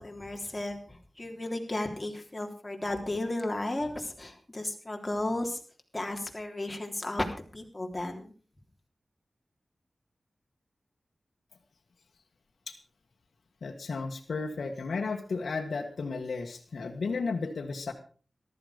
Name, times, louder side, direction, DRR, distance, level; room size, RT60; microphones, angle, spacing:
voice 1, 0.0-5.6 5.9-7.3 7.5-8.3, left 1 dB, 25° left, 2 dB, 3.6 m, -34 dB
voice 2, 13.6-17.9, left 4 dB, 85° left, 2 dB, 1.5 m, -33 dB
14.5 x 12.5 x 5.1 m, 0.39 s
cardioid pair, 55°, 0 cm